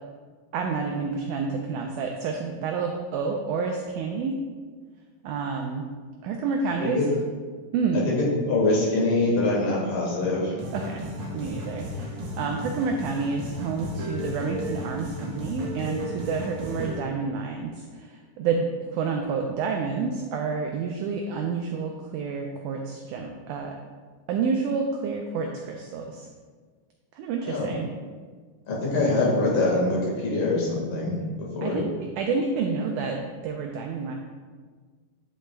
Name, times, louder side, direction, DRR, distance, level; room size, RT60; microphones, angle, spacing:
voice 1, 0.5-4.3 5.2-5.9 6.2-7.0 7.7-8.1 10.7-11.0 11.3-12.1 12.4-18.1 18.4-23.8 24.3-26.3 27.2-27.9 31.6-33.2 33.4-34.2, right 5 dB, 85° right, 3 dB, 1.7 m, -29 dB
voice 2, 7.9-10.6 27.4-27.7 28.7-31.8, left 2 dB, 65° left, -4 dB, 3.2 m, -24 dB
sound 1, 10.6-17.0, equal, 65° right, 1.4 m, -34 dB
9.3 x 7.9 x 2.2 m, 1.5 s
omnidirectional pair, 4.1 m